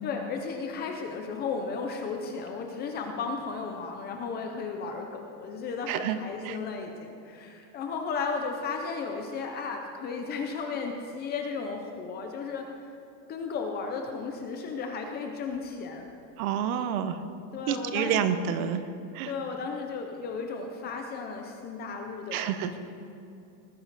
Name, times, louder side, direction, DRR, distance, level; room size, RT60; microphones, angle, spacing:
voice 1, 0.0-12.7 13.3-16.1 17.5-18.3 19.2-22.8, left 4 dB, 20° left, 3 dB, 0.5 m, -34 dB
voice 2, 5.9-6.2 6.4-6.6 16.4-17.2 17.7-18.8 19.1-19.3 22.3-22.8, right 9 dB, 60° right, 11 dB, 0.9 m, -28 dB
19.0 x 9.6 x 4.0 m, 2.8 s
cardioid pair, 180°, 48 cm